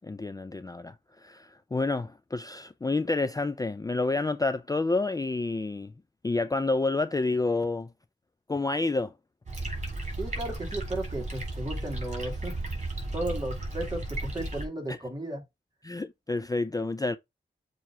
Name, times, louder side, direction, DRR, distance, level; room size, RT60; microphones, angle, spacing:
voice 1, 0.0-5.9 6.2-7.9 8.5-9.1 14.9-15.0 15.8-17.2, left 3 dB, 20° left, 0.4 m, -29 dB
sound 1, 9.5-14.7, right 2 dB, 40° right, 3.5 m, -34 dB
voice 2, 10.2-12.6 13.1-15.4, right 1 dB, 20° right, 2.6 m, -34 dB
7.3 x 3.1 x 4.7 m
wide cardioid pair, 80°, 19 cm